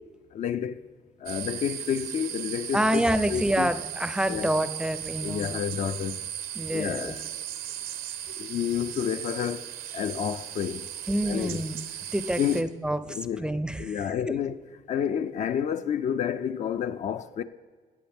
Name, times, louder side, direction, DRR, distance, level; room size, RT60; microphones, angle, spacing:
voice 1, 0.3-0.9 1.2-3.7 4.3-4.5 5.2-6.2 6.7-7.4 8.4-10.9 11.3-11.6 12.4-12.6 13.1-13.5 13.8-14.6 14.9-17.4, left 8 dB, 50° left, 0.4 m, -30 dB
sound 1, 1.3-12.6, right 11 dB, 85° right, 0.8 m, -37 dB
voice 2, 2.7-5.5 6.6-7.1 11.1-11.8 12.1-14.1, right 1 dB, 5° right, 0.4 m, -27 dB
17.5 x 7.6 x 3.5 m
cardioid pair, 120°, 15 cm